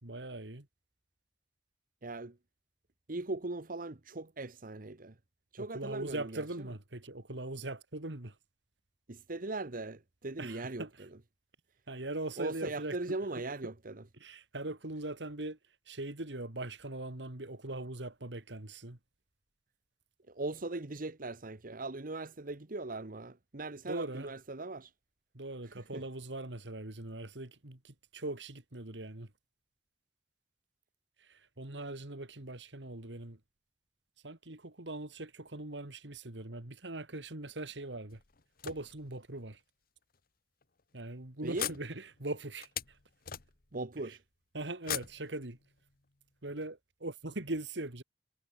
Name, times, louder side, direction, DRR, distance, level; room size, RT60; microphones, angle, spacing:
voice 1, 0.0-0.7 5.6-8.3 10.4-10.9 11.9-13.2 14.2-15.6 15.9-19.0 23.9-24.3 25.3-29.3 31.2-33.4 34.2-38.2 38.6-39.6 40.9-43.0 44.1-44.2 44.5-45.6 46.4-48.0, right 2 dB, 80° right, 2.7 m, -41 dB
voice 2, 2.0-2.4 3.1-5.1 5.5-6.4 9.1-11.1 12.4-14.0 20.3-24.9 25.6-26.0 41.4-41.7 43.7-44.2, right 2 dB, 50° right, 1.3 m, -39 dB
sound 1, 38.1-39.4 40.1-40.2 40.6-40.8 41.5-43.9 44.8-46.0, left 10 dB, 55° left, 1.4 m, -42 dB
head